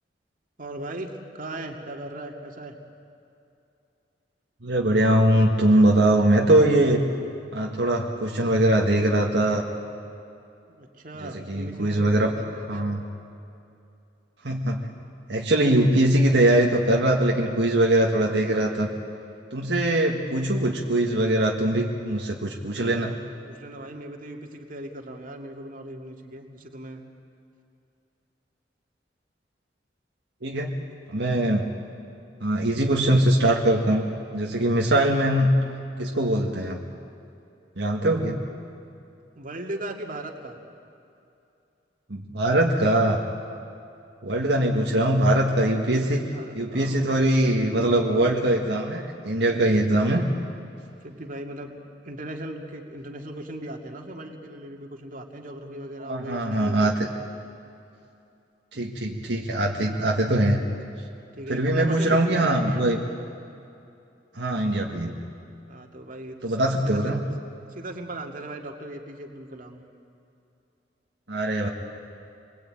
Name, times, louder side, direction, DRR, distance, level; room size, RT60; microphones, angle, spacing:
voice 1, 0.6-2.7 10.8-12.9 23.4-27.1 39.3-40.6 44.6-44.9 46.3-47.1 51.0-51.8 52.0-57.0 59.8-60.0 61.3-63.2 65.7-67.1 67.7-69.8, right 1 dB, 50° right, 2 dB, 2.4 m, -38 dB
voice 2, 4.6-7.1 7.5-9.6 11.2-12.3 12.7-13.0 14.4-14.9 15.3-18.9 19.5-23.1 30.4-30.7 31.1-31.7 32.4-34.1 34.3-35.5 36.0-36.8 37.8-38.4 42.1-43.2 44.2-46.3 46.5-50.3 56.0-57.1 58.7-60.6 61.5-63.0 64.3-65.2 66.4-67.2 71.3-71.7, right 1 dB, 70° right, -1 dB, 1.8 m, -22 dB
28.0 x 21.5 x 9.0 m, 2.6 s
head